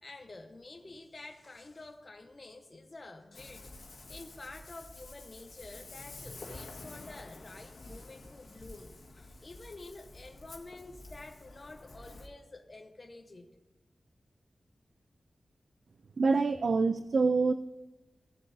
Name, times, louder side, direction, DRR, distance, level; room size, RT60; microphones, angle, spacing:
voice 1, 0.0-3.7 4.1-13.5, left 2 dB, 40° left, 4 dB, 0.9 m, -49 dB
Ocean, 3.3-12.3, left 2 dB, 75° left, 1.6 m, -49 dB
voice 2, 16.2-17.5, right 4 dB, 65° right, 11 dB, 0.3 m, -26 dB
16.5 x 7.3 x 2.7 m, 1.1 s
wide cardioid pair, 75°, 0 cm